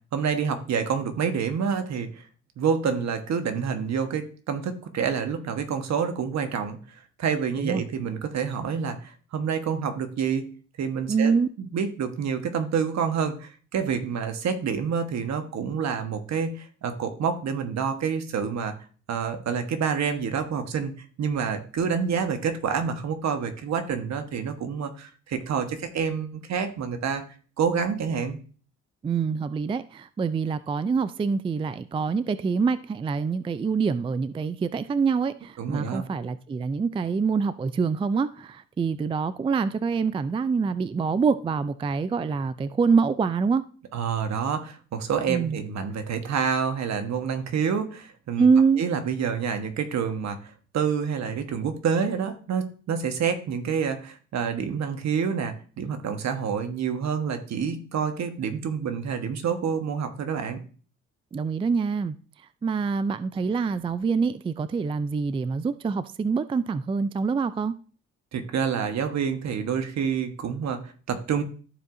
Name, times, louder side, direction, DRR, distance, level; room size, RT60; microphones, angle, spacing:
voice 1, 0.1-2.2 2.6-6.8 7.2-10.5 10.8-11.3 11.6-18.8 19.1-20.9 21.2-27.2 27.6-28.4 35.6-36.0 43.9-48.4 48.8-60.6 68.3-71.4, right 6 dB, 60° right, 1.3 m, -28 dB
voice 2, 11.1-11.5 29.0-43.6 45.3-45.6 48.4-48.8 61.3-62.1 62.6-67.7, right 5 dB, 20° right, 0.3 m, -25 dB
14.0 x 4.7 x 2.6 m
cardioid pair, 90°, 30 cm